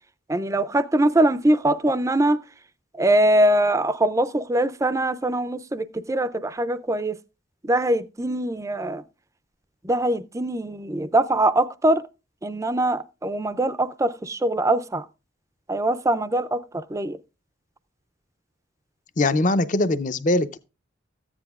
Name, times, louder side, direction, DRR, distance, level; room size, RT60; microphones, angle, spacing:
voice 1, 0.3-2.4 2.9-7.1 7.6-9.0 9.8-12.0 12.4-15.0 15.7-17.2, right 1 dB, 15° right, 0.4 m, -22 dB
voice 2, 19.2-20.6, left 2 dB, 40° left, 0.6 m, -21 dB
14.0 x 9.8 x 2.4 m
head